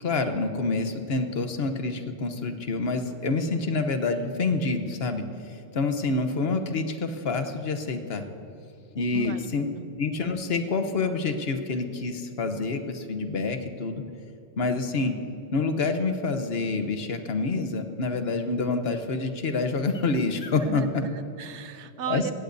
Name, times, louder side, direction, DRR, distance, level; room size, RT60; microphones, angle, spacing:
voice 1, 0.0-8.3 8.9-9.7 10.0-14.0 14.6-15.1 15.5-20.8 22.1-22.3, left 3 dB, 65° left, 7 dB, 1.2 m, -27 dB
voice 2, 20.7-22.3, right 7 dB, 85° right, 12 dB, 1.0 m, -34 dB
16.5 x 16.0 x 2.7 m, 2.7 s
omnidirectional pair, 1.1 m